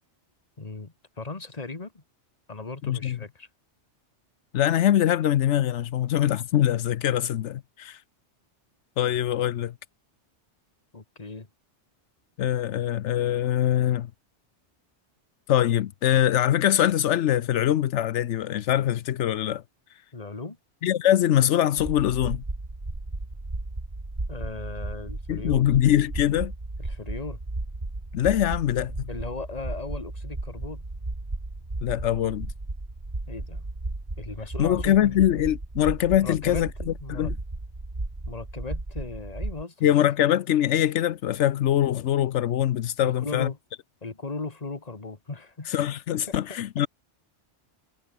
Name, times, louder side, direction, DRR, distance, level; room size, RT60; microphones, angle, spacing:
voice 1, 0.6-2.0 2.5-3.5 10.9-11.5 20.1-20.6 24.3-25.6 26.8-27.4 29.1-30.8 33.3-33.7 34.2-35.2 36.2-37.3 38.3-40.1 43.0-43.6 44.0-45.7 46.3-46.4 46.8-46.9, left 3 dB, 35° left, 2.0 m, -37 dB
voice 2, 2.8-3.2 4.5-8.0 9.0-9.7 12.4-14.1 15.5-19.6 20.8-22.4 25.3-26.5 28.1-29.1 31.8-32.5 34.6-36.7 37.1-37.3 39.8-43.5 45.7-46.9, left 11 dB, 85° left, 1.0 m, -23 dB
sound 1, 21.8-39.6, right 2 dB, 30° right, 2.4 m, -35 dB
omnidirectional pair, 1.2 m